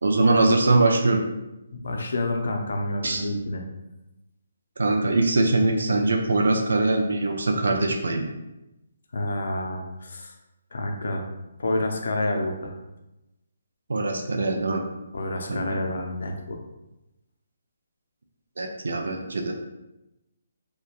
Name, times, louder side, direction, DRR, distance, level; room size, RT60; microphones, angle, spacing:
voice 1, 0.0-1.2 3.0-3.2 4.8-8.3 13.9-14.8 15.5-15.8 18.6-19.5, right 2 dB, 80° right, 3 dB, 0.3 m, -22 dB
voice 2, 1.8-3.6 9.1-10.3 10.7-11.3 11.6-12.7 15.1-16.6, left 1 dB, 65° left, 2 dB, 0.5 m, -28 dB
2.8 x 2.2 x 2.3 m, 0.94 s
hypercardioid pair, 180°, 0 cm